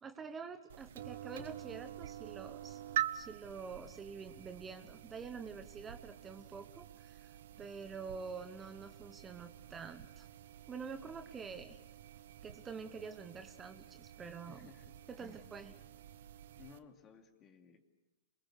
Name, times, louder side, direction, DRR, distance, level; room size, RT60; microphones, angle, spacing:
voice 1, 0.0-2.8 3.1-10.3 10.7-11.8 12.4-14.7 15.1-15.7, right 5 dB, 20° right, 8 dB, 1.2 m, -47 dB
sound 1, 0.7-16.8, right 11 dB, 60° right, 1.0 m, -46 dB
voice 2, 14.5-14.9 15.2-15.4 15.7-15.8 16.6-17.8, left 6 dB, 25° left, 5 dB, 2.8 m, -58 dB
27.5 x 21.5 x 6.6 m, 1.0 s
hypercardioid pair, 110°, 0 cm